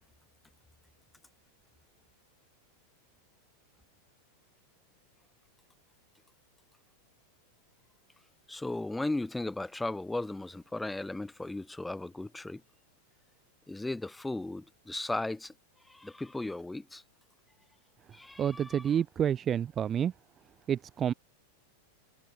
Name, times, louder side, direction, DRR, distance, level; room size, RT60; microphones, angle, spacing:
voice 1, 8.5-12.6 13.7-15.5 15.8-17.0 18.1-18.9, left 2 dB, 5° left, 0.9 m, -36 dB
voice 2, 18.4-20.1 20.7-21.1, right 9 dB, 25° right, 0.4 m, -29 dB
figure-of-eight pair, 90°, 0 cm